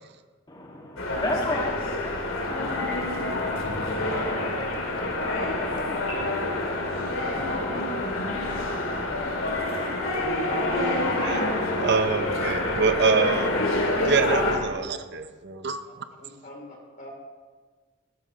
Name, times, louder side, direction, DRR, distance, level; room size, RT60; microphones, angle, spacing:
voice 1, 0.5-2.5, left 1 dB, 20° left, -1 dB, 1.7 m, -32 dB
sound 1, 1.0-14.6, left 2 dB, 80° left, 2.4 m, -27 dB
voice 2, 10.7-13.5 14.0-15.8, right 5 dB, 55° right, 9 dB, 0.6 m, -26 dB
voice 3, 15.8-17.1, left 1 dB, 40° left, 0 dB, 2.9 m, -45 dB
15.5 x 13.0 x 2.9 m, 1.4 s
head